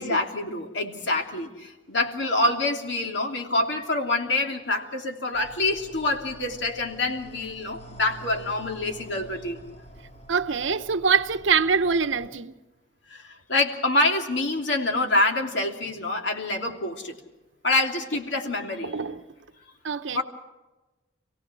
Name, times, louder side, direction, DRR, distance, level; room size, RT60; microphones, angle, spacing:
voice 1, 0.0-9.6 13.1-17.1 17.6-18.9 20.1-20.2, left 2 dB, 65° left, 3.0 m, -26 dB
sound 1, 5.3-12.3, right 1 dB, 35° left, 3.8 m, -47 dB
voice 2, 10.3-12.5 18.8-19.2 19.8-20.2, right 5 dB, 75° right, 0.9 m, -24 dB
27.5 x 17.5 x 6.2 m
head